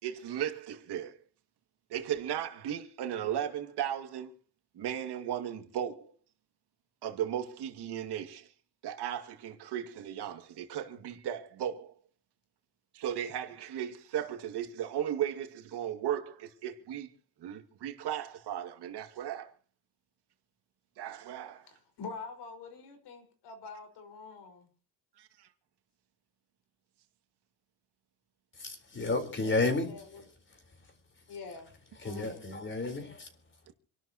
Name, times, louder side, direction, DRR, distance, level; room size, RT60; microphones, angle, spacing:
voice 1, 0.0-1.2 1.9-4.3 4.8-6.1 7.0-8.5 8.8-11.9 12.9-17.1 17.4-19.5 21.0-21.7 25.2-25.5, right 10 dB, 75° right, 2.3 m, -36 dB
voice 2, 21.7-24.7 29.4-30.3 31.3-31.7 32.0-32.6, left 4 dB, 75° left, 5.4 m, -46 dB
voice 3, 28.6-29.9 32.0-33.2, left 3 dB, 30° left, 4.3 m, -31 dB
28.0 x 12.0 x 3.0 m
cardioid pair, 120°, 41 cm